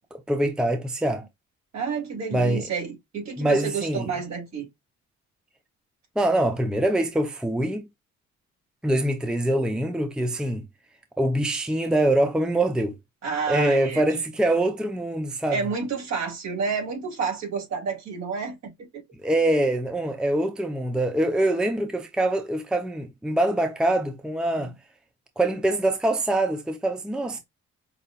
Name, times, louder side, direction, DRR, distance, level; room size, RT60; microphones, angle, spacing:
voice 1, 0.1-1.2 2.3-2.7 3.4-4.1 6.2-7.8 8.8-10.7 11.2-13.0 13.5-15.6 19.2-24.7 25.4-27.4, right 1 dB, 5° right, 0.6 m, -24 dB
voice 2, 1.7-4.7 13.2-14.2 15.5-19.0 21.4-21.5 24.6-24.7, right 5 dB, 60° right, 2.8 m, -30 dB
5.4 x 2.5 x 2.3 m
cardioid pair, 90°, 30 cm